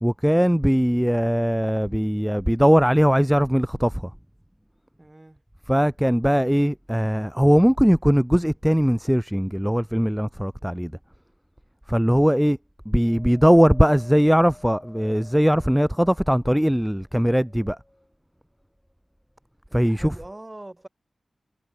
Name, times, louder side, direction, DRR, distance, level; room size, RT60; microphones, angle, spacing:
voice 1, 0.0-4.1 5.7-10.9 11.9-12.6 12.9-17.8 19.7-20.1, equal, 5° right, 0.5 m, -20 dB
voice 2, 5.0-5.4 19.7-20.9, right 1 dB, 25° right, 6.2 m, -42 dB
Wind, 13.0-16.5 17.1-18.1 18.9-19.0, left 1 dB, 20° left, 4.4 m, -50 dB
cardioid pair, 45°, 0 cm